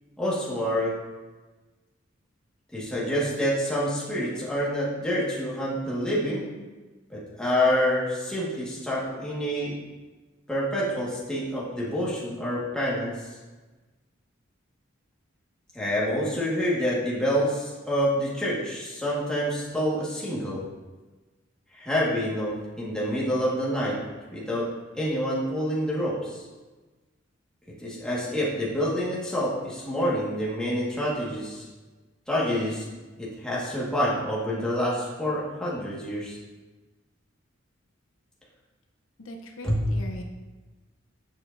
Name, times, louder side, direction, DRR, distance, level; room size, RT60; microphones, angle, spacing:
voice 1, 0.2-1.0 2.7-6.5 7.1-9.8 10.5-13.3 15.7-20.6 21.7-24.0 24.3-26.4 27.8-31.7 32.3-36.4 39.6-39.8, equal, 5° left, -7 dB, 1.5 m, -27 dB
voice 2, 39.2-40.2, equal, 80° left, 3 dB, 0.6 m, -40 dB
7.1 x 5.8 x 2.5 m, 1.2 s
head